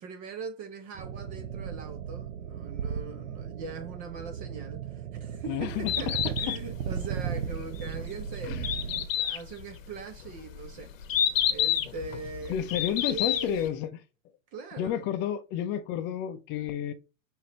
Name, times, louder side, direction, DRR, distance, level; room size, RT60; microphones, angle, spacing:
voice 1, 0.0-8.8 9.1-10.9 11.4-12.6 13.1-13.7 14.5-15.1, right 4 dB, 20° right, 0.4 m, -41 dB
sound 1, 0.9-9.1, right 8 dB, 80° right, 0.8 m, -36 dB
voice 2, 5.4-5.9 8.5-8.7 12.5-13.9 14.8-16.9, left 10 dB, 25° left, 0.5 m, -31 dB
Bird, 5.7-13.7, left 10 dB, 75° left, 1.0 m, -30 dB
6.1 x 2.7 x 3.0 m
hypercardioid pair, 120°, 40 cm